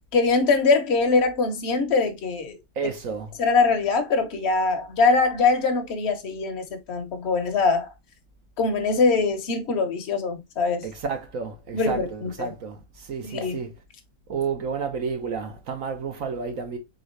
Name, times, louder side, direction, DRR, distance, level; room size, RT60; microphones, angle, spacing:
voice 1, 0.1-2.6 3.4-7.9 8.6-10.8 11.7-12.5 13.2-13.6, left 4 dB, 45° left, 1.1 m, -22 dB
voice 2, 2.8-3.3 10.8-13.7 14.3-16.8, right 5 dB, 55° right, 1.1 m, -31 dB
4.0 x 3.7 x 3.1 m
omnidirectional pair, 1.9 m